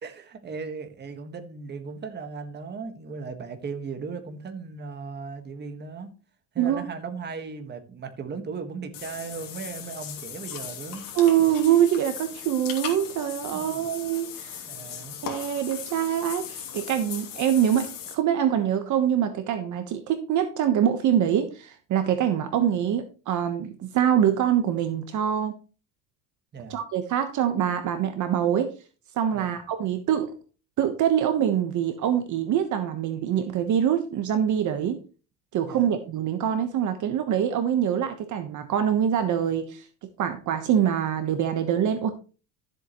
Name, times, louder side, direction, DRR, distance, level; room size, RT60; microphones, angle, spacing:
voice 1, 0.0-6.1 6.5-11.0 13.5-13.9 14.7-15.2 26.5-26.7 29.3-29.6 35.7-35.9, right 5 dB, 25° right, 6 dB, 1.6 m, -37 dB
Water / Bathtub (filling or washing), 8.9-18.1, left 9 dB, 60° left, 2.9 m, -38 dB
voice 2, 11.1-14.6 15.2-25.5 26.7-28.7 29.2-30.3 30.8-35.0 35.5-39.9 40.2-42.1, right 9 dB, 50° right, 8 dB, 1.2 m, -24 dB
13.0 x 7.7 x 3.1 m, 0.35 s
cardioid pair, 145°, 38 cm